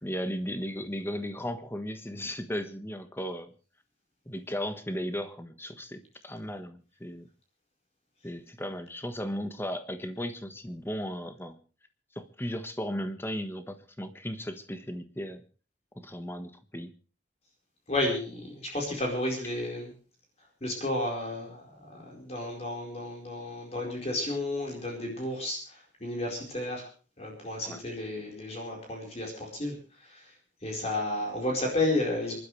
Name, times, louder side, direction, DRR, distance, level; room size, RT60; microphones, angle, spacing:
voice 1, 0.0-3.5 4.3-7.3 8.2-11.6 12.1-15.4 15.9-16.9 27.6-27.8, equal, 15° left, 9 dB, 1.4 m, -36 dB
voice 2, 17.9-19.9 20.6-26.8 27.2-30.3 30.6-32.3, left 1 dB, 35° left, 0 dB, 4.5 m, -32 dB
27.5 x 12.0 x 3.3 m, 0.38 s
head